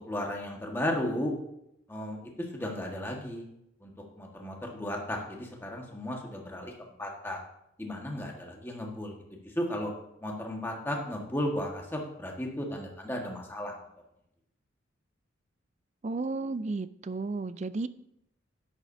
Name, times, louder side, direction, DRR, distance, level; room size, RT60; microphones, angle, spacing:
voice 1, 0.1-1.3 1.9-3.4 3.8-7.4 7.8-9.1 9.4-9.9 10.2-13.9, left 1 dB, 10° left, 0 dB, 1.5 m, -35 dB
voice 2, 16.0-17.9, right 3 dB, 35° right, 15 dB, 0.4 m, -33 dB
12.5 x 9.9 x 2.7 m, 0.80 s
head